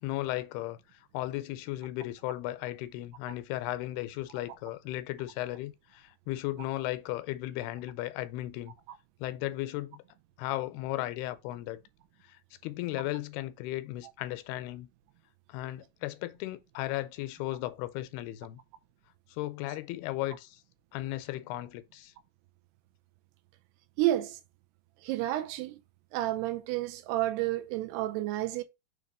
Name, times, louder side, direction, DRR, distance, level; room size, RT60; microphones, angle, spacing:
voice 1, 0.0-8.7 9.2-10.0 10.4-11.8 12.2-14.9 15.5-18.6 19.3-20.6 20.9-22.1, left 16 dB, 85° left, 2.5 m, -36 dB
voice 2, 24.0-24.4 25.0-25.8 26.1-28.6, right 15 dB, 90° right, 2.7 m, -30 dB
6.6 x 2.8 x 5.3 m
omnidirectional pair, 4.6 m